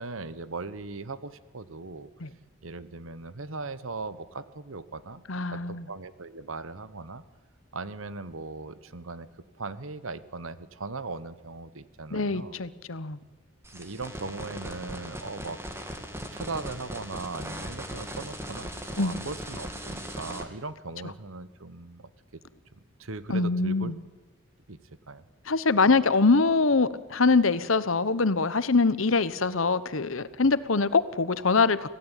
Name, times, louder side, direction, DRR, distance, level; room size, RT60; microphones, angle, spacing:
voice 1, 0.0-2.1 2.6-5.2 5.5-7.2 7.7-9.3 9.5-12.6 13.7-15.6 16.3-22.1 23.0-23.9 24.7-24.8 25.1-25.2, right 3 dB, 85° right, 15 dB, 1.2 m, -38 dB
voice 2, 5.3-5.8 12.1-13.2 19.0-19.3 23.3-24.0 25.5-31.9, left 3 dB, 85° left, 15 dB, 1.1 m, -24 dB
sound 1, 13.6-20.4, right 1 dB, 10° right, 2.4 m, -39 dB
25.5 x 16.5 x 9.1 m, 1.3 s
head